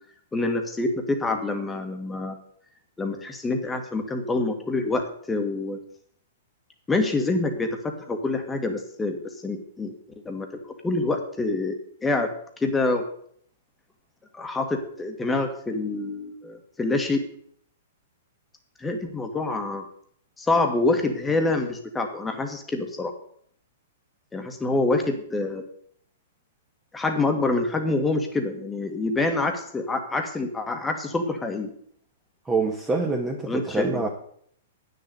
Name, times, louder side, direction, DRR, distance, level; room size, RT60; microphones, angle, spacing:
voice 1, 0.3-2.4 3.0-5.8 6.9-9.2 9.4-9.9 10.2-10.5 10.8-12.3 12.6-13.0 14.3-17.2 18.8-19.8 20.4-23.1 24.3-25.6 26.9-31.7 33.5-34.0, left 2 dB, 10° left, 4 dB, 1.7 m, -26 dB
voice 2, 32.4-34.1, right 3 dB, 10° right, -1 dB, 1.5 m, -25 dB
9.2 x 6.7 x 8.2 m, 0.62 s
hypercardioid pair, 145°, 0 cm